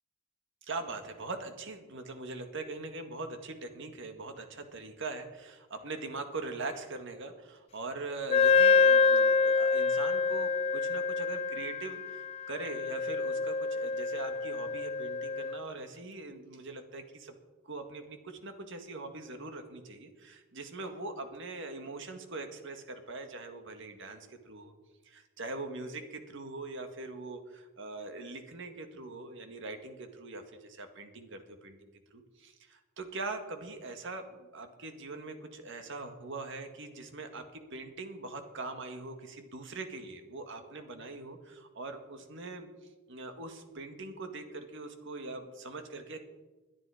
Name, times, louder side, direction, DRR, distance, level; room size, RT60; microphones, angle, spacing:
voice 1, 0.6-17.3 17.6-24.7 25.1-42.7 43.1-46.2, right 3 dB, 65° right, 6 dB, 1.9 m, -42 dB
Wind instrument woodwind instrument, 8.3-15.6, left 5 dB, 30° left, 0.4 m, -27 dB
21.0 x 11.0 x 5.0 m, 1.2 s
head